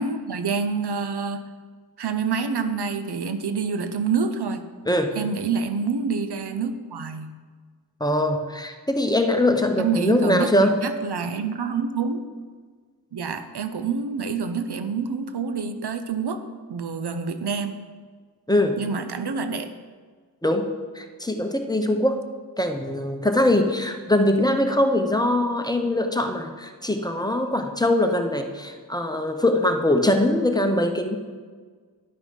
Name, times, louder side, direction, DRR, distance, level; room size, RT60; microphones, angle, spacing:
voice 1, 0.0-1.4 2.0-4.6 5.2-7.3 9.8-12.3 13.1-16.4 16.7-17.8 18.8-19.7, right 5 dB, 80° right, 9 dB, 0.7 m, -27 dB
voice 2, 8.0-10.8 18.5-18.8 20.4-20.7 20.9-22.2 22.6-31.2, left 1 dB, 10° left, 5 dB, 0.9 m, -22 dB
10.5 x 6.1 x 5.3 m, 1.6 s
wide cardioid pair, 55°, 39 cm